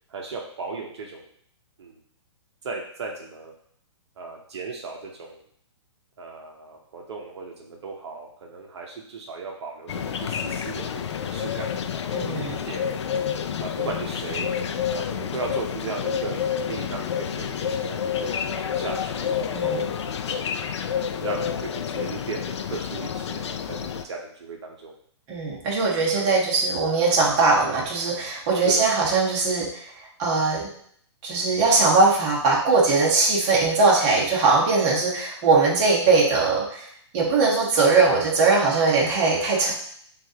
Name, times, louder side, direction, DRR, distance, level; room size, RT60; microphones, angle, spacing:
voice 1, 0.1-1.2 1.8-1.9 2.6-3.5 4.2-5.4 6.2-11.7 12.0-12.8 13.6-14.5 14.9-20.5 21.2-24.9 26.1-26.4 28.6-28.9, right 4 dB, 65° right, 0 dB, 0.8 m, -36 dB
sound 1, 9.9-24.0, left 7 dB, 70° left, 0.4 m, -29 dB
voice 2, 12.1-12.6 19.5-19.8 25.3-29.7 30.2-30.7 31.2-36.9 37.1-39.7, right 3 dB, 25° right, -4 dB, 1.1 m, -20 dB
6.0 x 2.5 x 2.8 m, 0.64 s
hypercardioid pair, 160°, 15 cm